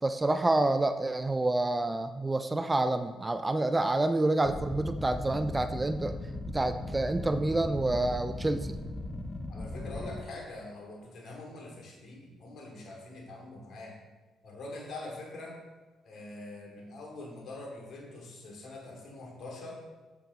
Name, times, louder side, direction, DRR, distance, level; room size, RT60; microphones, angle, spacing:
voice 1, 0.0-6.1 6.5-8.7, right 2 dB, 20° right, 10 dB, 0.5 m, -28 dB
sound 1, 4.4-10.2, left 2 dB, 20° left, 0.8 m, -38 dB
voice 2, 9.5-14.0 14.4-15.6 16.0-19.8, left 2 dB, 60° left, -1 dB, 2.6 m, -44 dB
7.8 x 6.9 x 4.2 m, 1.2 s
hypercardioid pair, 60°, 0 cm